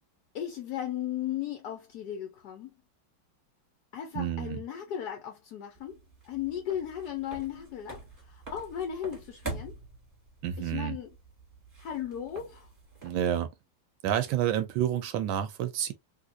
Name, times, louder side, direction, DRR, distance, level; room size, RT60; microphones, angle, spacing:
voice 1, 0.3-2.7 3.9-6.0 6.2-8.0 8.3-9.7 10.6-11.1 11.8-12.7, left 10 dB, 65° left, 1.2 m, -36 dB
voice 2, 4.1-4.6 10.4-11.0 13.0-13.5 14.0-15.9, right 10 dB, 80° right, 1.3 m, -29 dB
sound 1, 5.7-13.4, right 3 dB, 20° right, 1.4 m, -45 dB
3.7 x 2.8 x 2.5 m
omnidirectional pair, 2.2 m